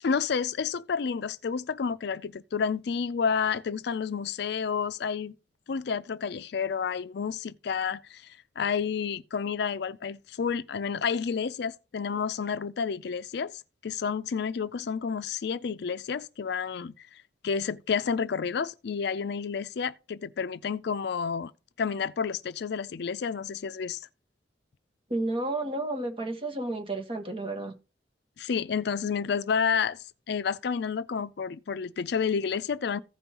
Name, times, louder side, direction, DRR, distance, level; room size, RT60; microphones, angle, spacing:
voice 1, 0.0-5.3 5.7-13.5 13.8-21.5 21.8-24.0 28.4-30.0 30.3-33.0, left 6 dB, 65° left, 0.4 m, -30 dB
voice 2, 25.1-27.7, right 2 dB, 30° right, 1.4 m, -31 dB
15.5 x 5.4 x 2.9 m
head